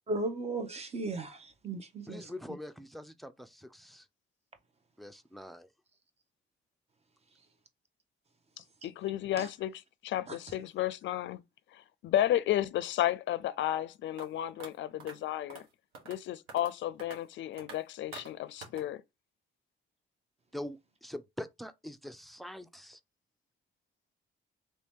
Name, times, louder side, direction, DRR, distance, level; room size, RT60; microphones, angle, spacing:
voice 1, 0.1-2.3 9.4-9.5 10.3-10.4, right 2 dB, 30° right, 0.8 m, -36 dB
voice 2, 2.1-4.1 5.0-5.7 20.5-23.0, left 1 dB, ahead, 0.4 m, -44 dB
voice 3, 8.6-11.4 11.7-15.7 16.1-19.0, left 12 dB, 70° left, 0.4 m, -33 dB
sound 1, 14.2-14.3 14.6-14.7 15.0-15.1 15.5-15.6 15.9-16.2 16.5-16.7 17.0-17.2 17.6-17.8 18.1-18.3 18.6-18.8, right 4 dB, 90° right, 1.2 m, -46 dB
3.1 x 2.8 x 3.5 m
cardioid pair, 90°, 20 cm